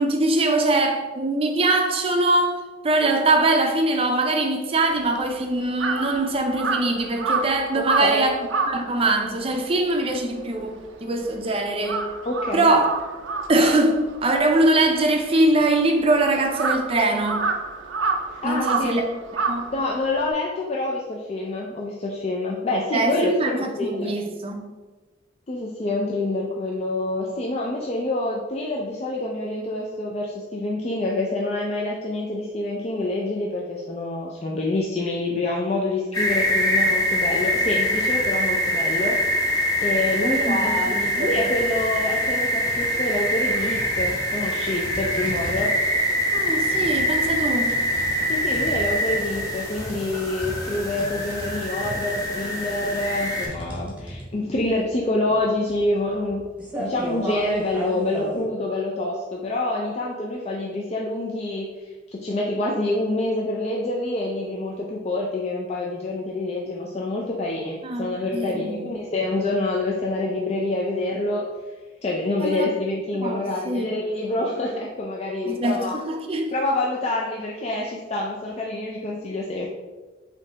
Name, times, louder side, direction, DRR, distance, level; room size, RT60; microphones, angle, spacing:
voice 1, 0.0-8.4 8.7-12.1 12.5-12.9 13.5-17.5 18.4-19.1 19.5-19.7 22.9-24.6 40.2-41.4 46.3-47.8 67.8-69.0 72.4-72.7 73.2-74.0 75.5-76.5, right 2 dB, 30° right, 0.5 m, -22 dB
Crow, 4.8-11.4 11.7-20.3, right 4 dB, 85° right, 0.5 m, -29 dB
voice 2, 7.7-8.2 12.3-12.7 18.3-19.0 19.7-24.1 25.5-39.2 39.8-45.7 48.3-56.5 56.8-71.5 72.0-76.0 76.5-79.7, left 2 dB, 35° left, 0.4 m, -27 dB
sound 1, 36.1-53.5, equal, 20° left, 0.8 m, -24 dB
sound 2, 41.6-41.9 42.2-43.2 43.7-58.4, right 1 dB, 5° right, 0.9 m, -36 dB
5.1 x 2.8 x 3.3 m
head